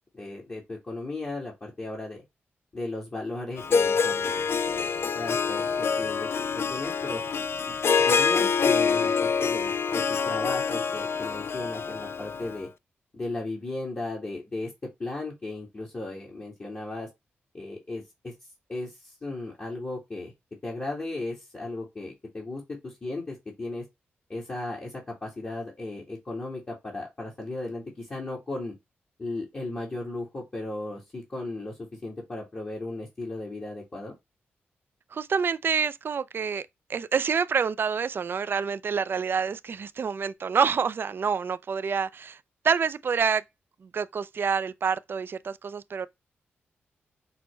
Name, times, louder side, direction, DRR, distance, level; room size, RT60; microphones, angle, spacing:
voice 1, 0.1-2.2 2.7-4.9 5.2-7.2 7.7-12.7 13.1-14.7 15.0-17.1 17.5-18.3 18.7-20.3 20.6-23.8 24.3-28.7 29.2-34.1, left 2 dB, 35° left, 1.8 m, -36 dB
Harp, 3.6-12.6, left 5 dB, 60° left, 0.3 m, -26 dB
voice 2, 35.1-42.4 42.6-43.4 43.8-46.1, right 6 dB, 55° right, 0.4 m, -27 dB
5.9 x 2.1 x 3.1 m
cardioid pair, 60°, 5 cm